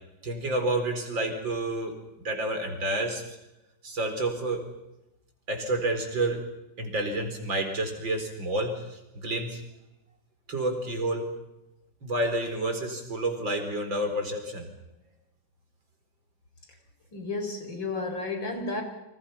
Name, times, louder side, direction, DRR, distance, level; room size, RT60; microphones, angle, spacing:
voice 1, 0.2-2.0 2.2-3.4 3.8-4.7 5.5-6.4 6.8-9.6 10.5-11.3 12.0-14.7, right 1 dB, 85° right, 5 dB, 5.1 m, -29 dB
voice 2, 17.1-18.8, left 3 dB, 85° left, 6 dB, 5.2 m, -32 dB
30.0 x 25.0 x 5.8 m, 0.92 s
omnidirectional pair, 2.0 m